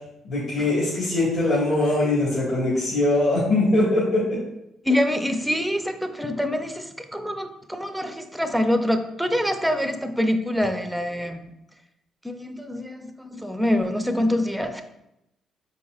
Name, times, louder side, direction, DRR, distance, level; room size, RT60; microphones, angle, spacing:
voice 1, 0.2-4.4, left 2 dB, 60° left, -6 dB, 1.6 m, -22 dB
voice 2, 4.8-11.5 12.2-14.8, left 1 dB, ahead, 6 dB, 0.4 m, -25 dB
5.0 x 4.1 x 2.4 m, 0.84 s
cardioid pair, 90°, 0 cm